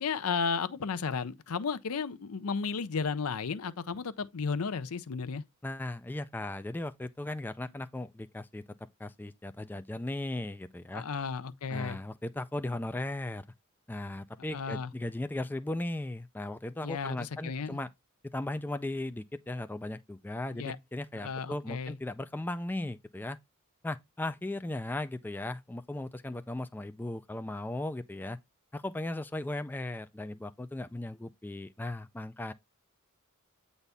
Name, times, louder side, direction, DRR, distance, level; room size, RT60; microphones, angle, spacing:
voice 1, 0.0-5.4 10.9-12.0 14.5-14.9 16.8-17.8 20.5-20.8 21.2-22.0, left 5 dB, 75° left, 0.6 m, -34 dB
voice 2, 5.6-8.6 9.0-11.0 11.7-13.4 13.9-17.9 18.3-23.4 23.8-28.4 28.7-32.5, left 1 dB, 10° left, 0.3 m, -37 dB
8.1 x 4.1 x 3.4 m
head